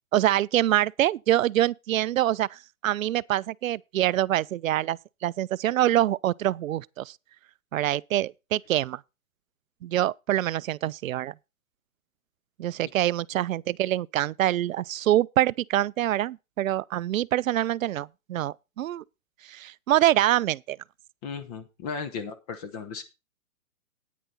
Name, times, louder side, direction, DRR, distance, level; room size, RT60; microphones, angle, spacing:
voice 1, 0.1-7.2 7.7-9.0 9.8-11.3 12.6-19.0 19.4-20.8, right 13 dB, 70° right, 0.5 m, -25 dB
voice 2, 21.2-23.0, left 5 dB, 30° left, 1.0 m, -35 dB
10.0 x 9.4 x 4.1 m
hypercardioid pair, 145°, 42 cm